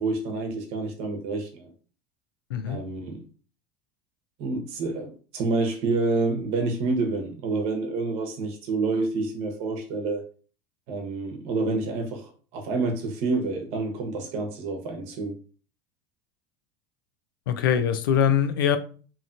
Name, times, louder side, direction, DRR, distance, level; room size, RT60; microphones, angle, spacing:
voice 1, 0.0-1.7 2.7-3.2 4.4-10.2 10.9-15.4, right 3 dB, 60° right, 0.9 m, -28 dB
voice 2, 17.5-18.8, left 8 dB, 90° left, 0.4 m, -22 dB
2.8 x 2.7 x 2.5 m
supercardioid pair, 100°, 11 cm